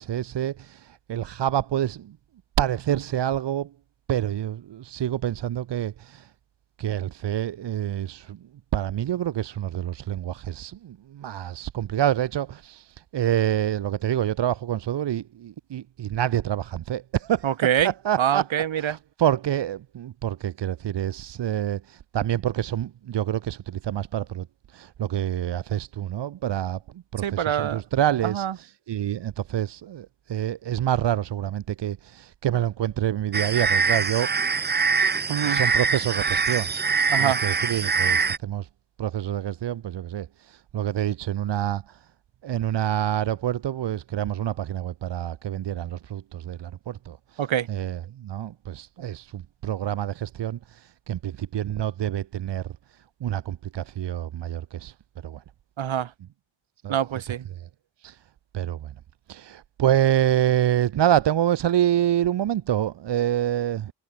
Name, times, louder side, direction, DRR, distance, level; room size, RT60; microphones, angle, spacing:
voice 1, 0.0-2.2 2.6-3.7 4.1-6.3 6.8-8.4 8.7-17.5 17.8-18.5 18.8-24.5 24.7-34.3 35.4-38.7 39.0-42.1 42.4-54.9 55.2-55.4 56.8-57.0 57.5-57.7 58.0-58.2 58.5-58.9 59.3-63.9, right 11 dB, 60° right, 1.0 m, -27 dB
voice 2, 17.4-17.9 18.2-19.0 27.2-27.8 28.2-28.5 35.3-35.6 37.1-37.4 47.4-47.7 55.8-56.1 56.9-57.4, right 10 dB, 80° right, 3.0 m, -25 dB
sound 1, 33.3-38.4, right 5 dB, 20° right, 0.7 m, -23 dB
wide cardioid pair, 165°, 46 cm